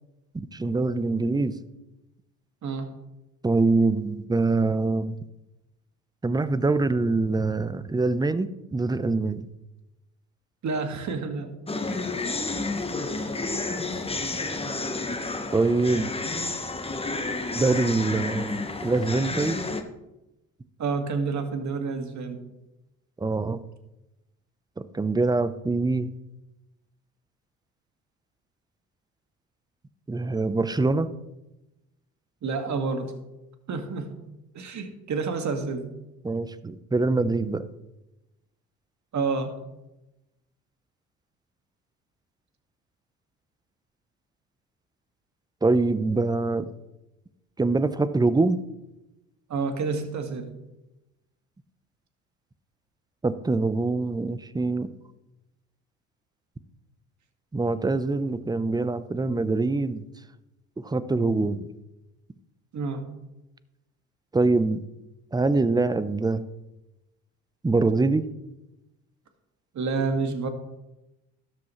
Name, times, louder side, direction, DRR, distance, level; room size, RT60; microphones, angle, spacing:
voice 1, 0.3-1.6 3.4-5.2 6.2-9.4 15.5-16.1 17.6-18.5 18.8-19.6 23.2-23.6 24.8-26.1 30.1-31.1 36.2-37.6 45.6-46.7 47.6-48.6 53.2-54.9 57.5-60.0 60.8-61.7 64.3-64.8 65.3-66.4 67.6-68.2, right 3 dB, 10° right, 15 dB, 0.7 m, -24 dB
voice 2, 10.6-11.5 20.8-22.5 32.4-33.1 33.7-34.2 34.5-35.9 39.1-39.6 49.5-50.5 62.7-63.1 69.7-70.5, right 4 dB, 45° right, 6 dB, 1.9 m, -29 dB
sound 1, 11.7-19.8, left 3 dB, 15° left, 1.3 m, -30 dB
13.0 x 10.5 x 3.2 m, 0.96 s
hypercardioid pair, 65°, 39 cm